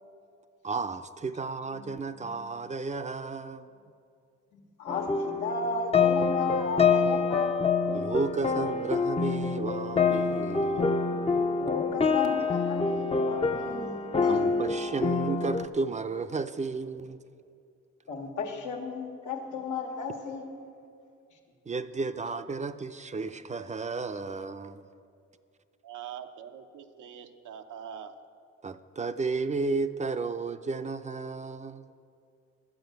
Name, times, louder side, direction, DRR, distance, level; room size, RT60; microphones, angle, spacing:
voice 1, 0.6-3.7 7.9-11.0 14.3-17.2 21.7-24.8 28.6-31.9, right 4 dB, 25° right, 11 dB, 0.5 m, -33 dB
voice 2, 4.5-7.5 11.6-14.7 18.1-20.4, left 4 dB, 90° left, 2 dB, 1.6 m, -34 dB
sound 1, 4.9-15.7, left 5 dB, 20° left, 0.6 m, -26 dB
voice 3, 25.8-28.2, right 8 dB, 90° right, 6 dB, 0.9 m, -43 dB
11.5 x 7.9 x 7.9 m, 2.4 s
cardioid pair, 90°, 29 cm